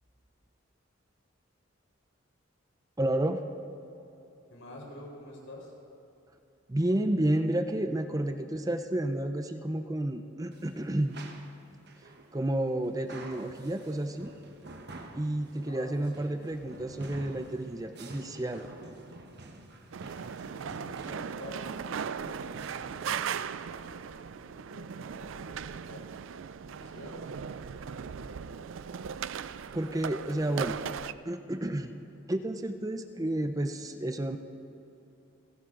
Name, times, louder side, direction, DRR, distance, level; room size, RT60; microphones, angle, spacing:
voice 1, 3.0-3.4 6.7-11.2 12.3-14.3 15.1-18.6 29.7-30.8 31.3-31.9 32.3-34.4, right 1 dB, 15° right, 8 dB, 0.6 m, -31 dB
voice 2, 4.5-5.7 15.7-16.4 20.5-26.0 26.8-27.2 27.6-28.7, left 1 dB, 75° left, -1 dB, 4.3 m, -49 dB
sound 1, 10.5-23.3, right 2 dB, 55° right, 1.2 m, -49 dB
sound 2, 19.9-31.1, right 7 dB, 70° right, 0.4 m, -38 dB
29.0 x 11.5 x 3.8 m, 3.0 s
head